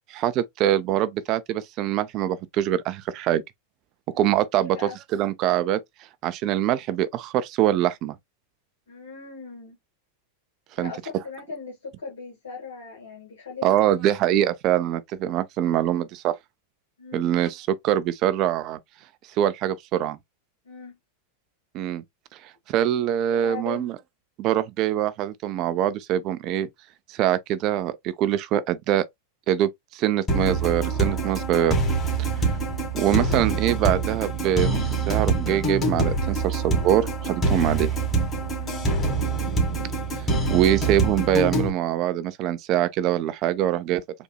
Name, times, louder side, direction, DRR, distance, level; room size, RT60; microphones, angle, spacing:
voice 1, 0.1-3.4 4.1-4.8 5.1-5.8 6.2-8.2 10.8-10.9 13.6-16.4 17.1-18.8 19.4-20.2 21.7-22.0 22.4-23.9 24.4-26.7 27.1-29.1 29.5-31.8 32.2-32.3 32.9-34.8 35.1-37.9 40.2-44.0, right 11 dB, 45° right, 0.5 m, -24 dB
voice 2, 4.6-5.0 8.9-9.8 10.8-14.0 17.0-17.3 20.6-21.0 23.3-23.9 32.3-32.6 38.6-38.9, left 5 dB, 75° left, 1.6 m, -39 dB
sound 1, 30.3-41.7, right 3 dB, 25° left, 1.9 m, -25 dB
4.1 x 2.6 x 2.3 m
figure-of-eight pair, 90°, 0 cm